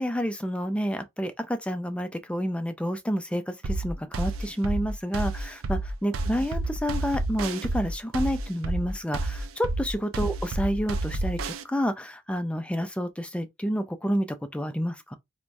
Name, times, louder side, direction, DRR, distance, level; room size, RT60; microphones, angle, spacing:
voice 1, 0.0-15.2, equal, 5° left, 0.4 m, -29 dB
sound 1, 3.6-11.6, right 2 dB, 75° right, 0.5 m, -30 dB
4.5 x 2.1 x 2.6 m
head